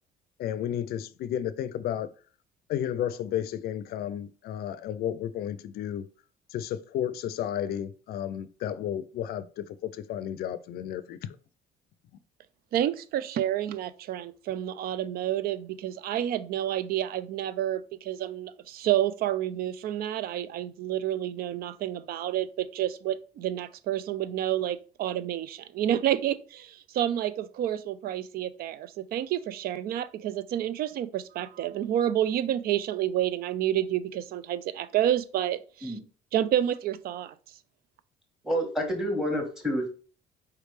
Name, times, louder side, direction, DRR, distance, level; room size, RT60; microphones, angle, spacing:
voice 1, 0.4-2.1 2.7-6.1 6.5-11.3, left 10 dB, 65° left, 0.5 m, -32 dB
voice 2, 12.7-35.9 36.3-37.3, right 11 dB, 65° right, 0.4 m, -29 dB
voice 3, 38.4-39.9, equal, 5° right, 1.4 m, -28 dB
4.7 x 3.2 x 3.3 m
cardioid pair, 110°, 17 cm